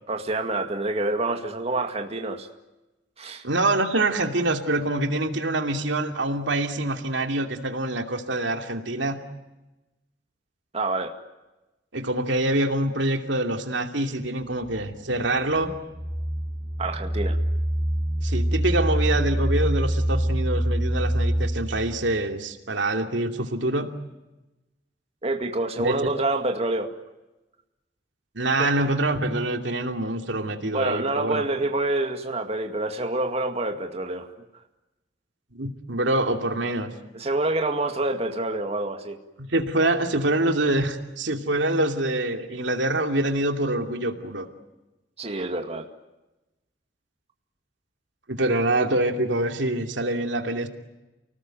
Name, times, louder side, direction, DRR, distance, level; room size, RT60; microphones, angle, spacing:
voice 1, 0.1-2.5 3.2-3.4 10.7-11.1 16.8-17.4 25.2-27.0 28.6-28.7 30.7-34.3 37.1-39.2 45.2-45.9, right 2 dB, 35° right, 4 dB, 2.2 m, -27 dB
voice 2, 3.4-9.2 11.9-15.8 18.2-23.9 25.8-26.0 28.3-31.5 35.5-36.9 39.4-44.5 48.3-50.7, right 1 dB, 85° right, 5 dB, 2.7 m, -25 dB
sound 1, 14.3-22.1, right 1 dB, 25° left, 4.3 m, -26 dB
29.5 x 19.5 x 9.2 m, 1.0 s
head